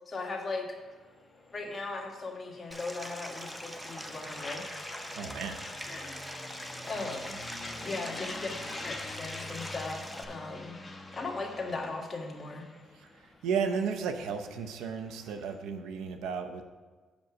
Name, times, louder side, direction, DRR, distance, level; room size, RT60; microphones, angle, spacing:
voice 1, 0.1-0.7 1.5-4.9 5.8-6.2 6.6-7.4 7.8-8.5 8.8-10.8 11.1-12.7, left 3 dB, 30° left, 0 dB, 1.6 m, -38 dB
sound 1, 0.8-15.6, left 2 dB, 15° left, 1.1 m, -45 dB
Stream, 2.7-10.2, equal, 5° right, 0.7 m, -43 dB
voice 2, 5.2-5.6 12.9-16.6, right 6 dB, 90° right, 7 dB, 0.7 m, -34 dB
7.0 x 5.2 x 6.1 m, 1.4 s
cardioid pair, 95°, 0 cm